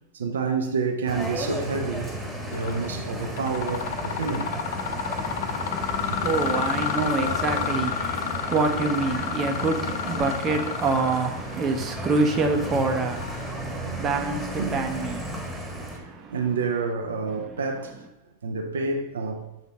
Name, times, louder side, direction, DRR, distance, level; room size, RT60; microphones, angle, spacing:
voice 1, 0.1-2.1 2.5-4.5 4.9-5.0 6.1-6.3 14.6-14.8 16.0-18.0 18.4-19.5, right 4 dB, 65° right, 0.7 m, -29 dB
sound 1, 1.1-16.0, equal, 5° right, 1.6 m, -34 dB
Mechanisms, 2.5-2.9 3.2-13.8, left 7 dB, 55° left, 0.5 m, -31 dB
voice 2, 5.5-16.4 17.5-17.6, right 3 dB, 25° right, 0.9 m, -27 dB
7.2 x 4.0 x 5.3 m
figure-of-eight pair, 90°, 0 cm